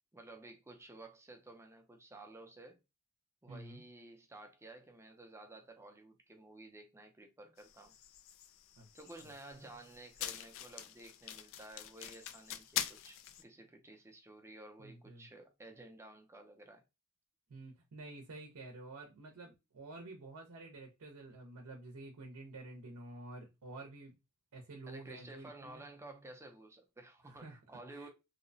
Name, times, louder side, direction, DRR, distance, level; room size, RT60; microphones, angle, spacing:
voice 1, 0.1-2.8 3.4-7.9 8.9-16.8 24.9-28.1, right 2 dB, 10° right, 0.5 m, -53 dB
voice 2, 3.5-3.8 8.8-8.9 14.8-15.3 17.5-24.1 24.5-25.9 27.3-27.6 27.9-28.1, right 2 dB, 85° right, 0.6 m, -50 dB
sound 1, 7.6-13.4, left 10 dB, 60° left, 0.3 m, -44 dB
2.8 x 2.1 x 2.6 m
head